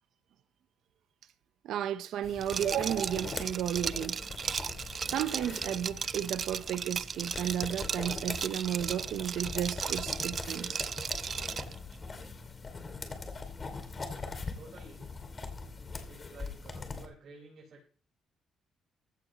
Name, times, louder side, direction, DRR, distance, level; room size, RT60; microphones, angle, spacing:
voice 1, 1.6-4.2 5.1-10.9, right 10 dB, 80° right, 0.8 m, -33 dB
sound 1, 2.2-17.1, left 4 dB, 35° left, 2.5 m, -42 dB
Liquid, 2.4-11.7, right 6 dB, 45° right, 0.4 m, -36 dB
voice 2, 14.5-15.2 16.1-17.9, right 4 dB, 60° right, 4.7 m, -52 dB
15.5 x 10.5 x 3.0 m
cardioid pair, 90°, 0 cm